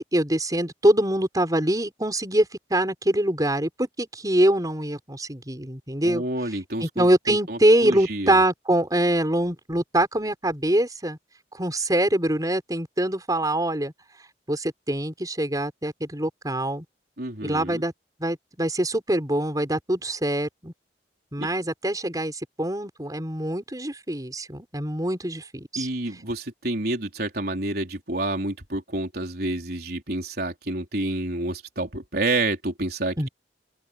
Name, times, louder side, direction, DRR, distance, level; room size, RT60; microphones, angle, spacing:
voice 1, 0.0-6.2 6.8-11.2 11.5-13.9 14.5-16.8 17.4-17.9 18.2-20.7 21.3-25.9 33.2-33.3, right 1 dB, 20° right, 6.0 m, -24 dB
voice 2, 6.0-8.4 17.2-17.8 21.4-21.5 25.8-33.3, right 2 dB, 60° right, 4.1 m, -29 dB
head